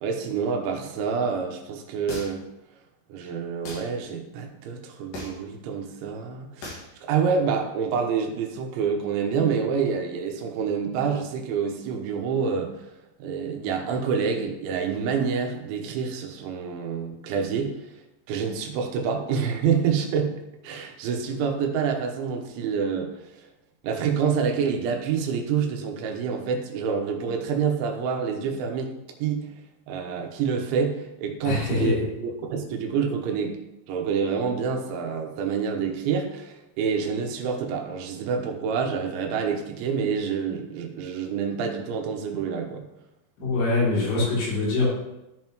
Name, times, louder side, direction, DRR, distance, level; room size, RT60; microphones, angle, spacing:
voice 1, 0.0-2.4 3.1-12.7 13.2-17.7 18.3-20.4 20.6-23.1 23.8-28.9 29.2-29.5 29.9-33.6 33.9-42.9, right 6 dB, 85° right, 3 dB, 3.4 m, -27 dB
sound 1, 2.1-2.5 3.6-3.9 5.1-5.5 6.6-6.9, left 2 dB, 55° left, 3.1 m, -37 dB
voice 2, 31.4-32.1 43.4-44.8, left 3 dB, 85° left, -7 dB, 5.5 m, -24 dB
14.0 x 5.5 x 3.1 m, 0.91 s
omnidirectional pair, 5.3 m